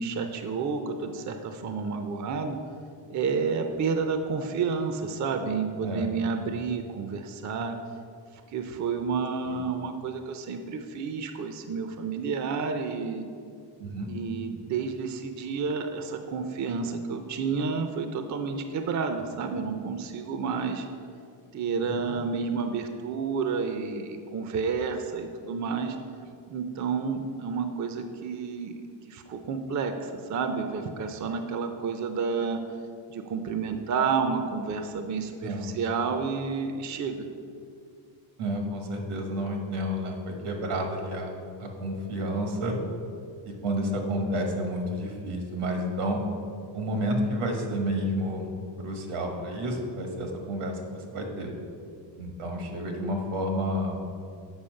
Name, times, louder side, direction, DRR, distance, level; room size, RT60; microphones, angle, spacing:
voice 1, 0.0-2.6 3.1-7.8 8.5-13.2 14.1-20.9 21.5-26.0 26.5-28.8 29.1-32.6 33.1-37.3, right 5 dB, 40° right, 7 dB, 0.5 m, -30 dB
voice 2, 21.8-22.1 35.4-35.7 38.4-42.7 43.4-46.2 46.7-48.5 48.8-51.5 52.2-54.0, equal, 85° right, 2 dB, 1.5 m, -30 dB
7.2 x 4.8 x 6.4 m, 2.4 s
cardioid pair, 135°, 49 cm